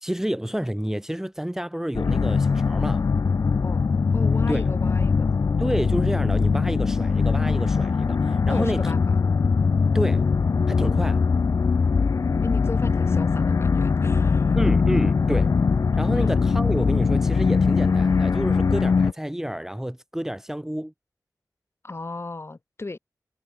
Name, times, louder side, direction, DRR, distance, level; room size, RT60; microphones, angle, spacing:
voice 1, 0.0-3.1 4.5-4.6 5.6-8.9 9.9-10.3 10.7-11.2 14.5-15.6 16.0-20.9, equal, 5° right, 1.9 m, -29 dB
sound 1, 1.9-19.1, left 5 dB, 55° left, 0.4 m, -21 dB
voice 2, 3.6-5.3 8.5-9.1 12.4-14.6 21.8-23.0, left 3 dB, 40° left, 5.1 m, -34 dB
wide cardioid pair, 100°, 7 cm